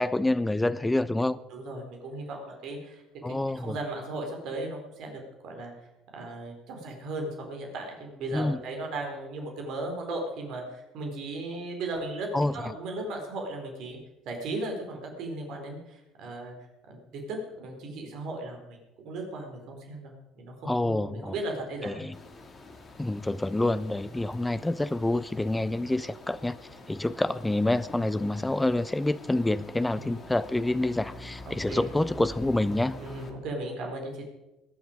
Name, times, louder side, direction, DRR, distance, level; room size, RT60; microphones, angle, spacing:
voice 1, 0.0-1.4 3.2-3.8 8.3-8.6 12.3-12.5 20.7-21.3 21.8-22.1 23.0-26.6 26.9-33.0, left 2 dB, 10° left, 15 dB, 1.0 m, -27 dB
voice 2, 1.5-5.7 6.1-12.3 12.5-14.0 14.3-16.5 16.9-18.8 19.0-22.1 29.9-30.2 31.5-32.3 33.0-34.2, right 2 dB, 60° right, 2 dB, 4.2 m, -37 dB
sound 1, 22.1-33.3, left 2 dB, 35° left, 3.0 m, -46 dB
21.0 x 11.5 x 5.1 m, 1.0 s
figure-of-eight pair, 50°, 0 cm